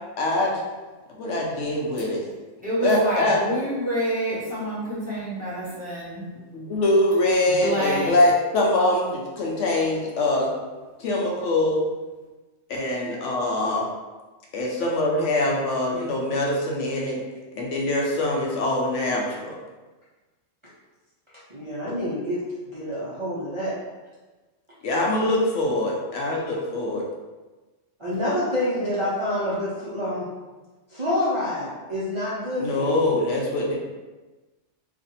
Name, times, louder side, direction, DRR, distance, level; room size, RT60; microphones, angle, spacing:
voice 1, 0.2-0.6 1.2-2.2 2.8-3.4 6.5-10.5 11.0-11.8 12.7-13.9 14.5-17.2 17.6-19.6 21.9-22.0 24.8-27.1 32.6-33.8, left 2 dB, 75° left, -2 dB, 0.9 m, -23 dB
voice 2, 2.6-6.3 7.5-8.1, equal, 5° right, -9 dB, 1.2 m, -27 dB
voice 3, 21.5-22.4 22.7-23.8 28.0-30.2 30.9-33.0, left 1 dB, 30° right, -10 dB, 0.6 m, -27 dB
2.5 x 2.4 x 4.1 m, 1.2 s
omnidirectional pair, 1.3 m